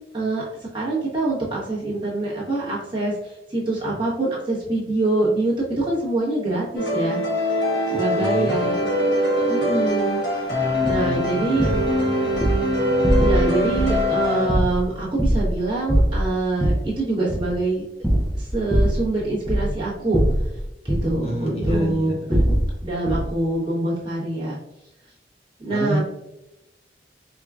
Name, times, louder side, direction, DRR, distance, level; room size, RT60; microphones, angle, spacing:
voice 1, 0.1-0.4 0.7-7.2 7.9-8.9 9.5-10.2 10.5-11.7 13.2-17.8 18.4-20.2 20.8-22.4 22.8-24.5 25.6-26.0, right 2 dB, 30° right, -7 dB, 1.2 m, -25 dB
sound 1, 6.8-14.5, equal, 80° left, 1.3 m, -22 dB
voice 2, 7.9-8.6 10.8-12.2 21.2-22.3 25.7-26.0, right 1 dB, 35° left, -2 dB, 0.9 m, -29 dB
sound 2, 10.8-11.1 11.6-11.9 12.3-12.6 13.0-13.5 13.7-14.1 14.5-15.6 15.9-16.9 17.3-17.6 18.0-19.1 19.4-19.8 20.1-21.2 21.6-21.9 22.3-22.7 23.1-23.3, equal, 5° right, 0.4 m, -22 dB
4.7 x 2.3 x 2.4 m, 0.90 s
head